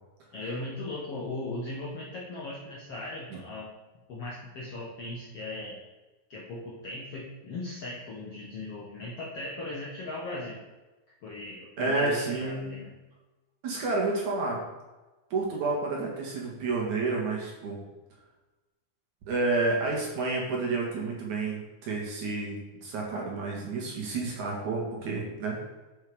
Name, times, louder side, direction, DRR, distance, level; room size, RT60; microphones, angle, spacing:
voice 1, 0.3-3.7 4.1-5.8 6.3-10.6 11.2-12.9, left 2 dB, 70° left, -5 dB, 1.4 m, -38 dB
voice 2, 11.8-12.8 13.6-14.6 15.3-17.8 19.3-25.7, right 3 dB, 55° right, -2 dB, 2.7 m, -30 dB
12.5 x 5.6 x 5.0 m, 1.1 s
omnidirectional pair, 4.9 m